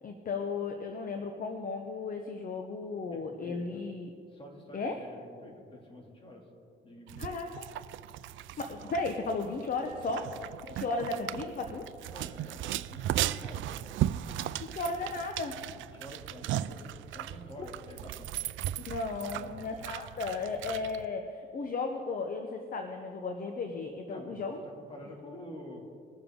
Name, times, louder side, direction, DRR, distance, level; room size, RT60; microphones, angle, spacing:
voice 1, 0.0-4.1 4.7-5.0 7.2-7.6 8.6-10.3 10.6-11.9 14.6-15.5 18.8-24.6, left 3 dB, 45° left, 5 dB, 0.9 m, -35 dB
voice 2, 3.1-3.9 4.3-6.5 6.8-7.3 10.3-11.1 12.1-13.7 15.8-18.3 19.3-19.7 24.0-25.9, left 1 dB, 25° left, 0 dB, 2.7 m, -48 dB
sound 1, 7.1-21.1, right 13 dB, 80° right, 0.4 m, -37 dB
21.0 x 7.0 x 3.8 m, 2.4 s
cardioid pair, 90°, 20 cm